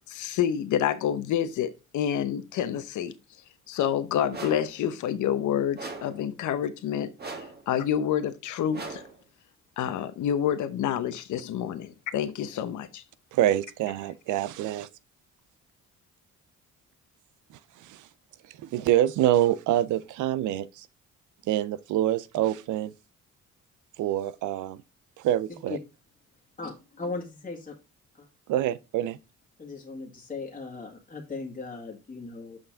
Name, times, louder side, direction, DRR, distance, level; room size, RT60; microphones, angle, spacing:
voice 1, 0.1-3.1 3.7-7.1 7.7-9.0 9.8-13.0, left 9 dB, 75° left, 0.9 m, -28 dB
sound 1, 4.3-4.8 5.8-6.2 7.2-7.7 8.7-9.2, right 3 dB, 35° right, 1.5 m, -39 dB
voice 2, 13.3-14.9 17.8-18.1 18.5-20.9 21.5-22.9 24.0-24.8 25.2-25.8 28.5-29.2, right 12 dB, 80° right, 0.6 m, -26 dB
voice 3, 26.6-27.8 28.1-28.3 29.6-32.6, left 3 dB, 30° left, 1.8 m, -38 dB
6.6 x 5.7 x 3.7 m
cardioid pair, 90°, 30 cm